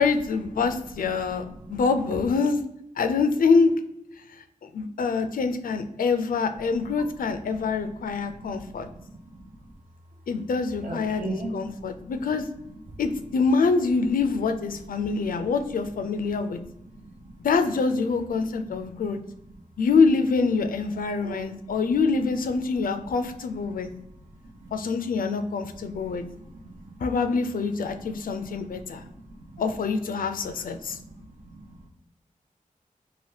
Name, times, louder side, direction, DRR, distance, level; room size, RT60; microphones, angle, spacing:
voice 1, 0.0-1.4 1.7-2.6 3.0-3.7 4.6-8.9 10.3-11.2 11.5-12.5 13.0-16.6 17.4-19.2 19.8-23.9 24.7-26.2 27.0-29.0 29.6-31.0, left 4 dB, 90° left, 8 dB, 0.4 m, -25 dB
voice 2, 1.0-1.9 6.9-9.7 10.8-12.1 12.6-13.0 14.9-15.5 16.0-17.4 18.4-19.3 21.2-21.8 22.8-23.1 23.6-24.7 25.7-27.2 28.0-29.6 30.4-31.8, right 1 dB, 70° right, 0 dB, 0.8 m, -43 dB
2.8 x 2.5 x 3.2 m, 0.79 s
wide cardioid pair, 115°, 14 cm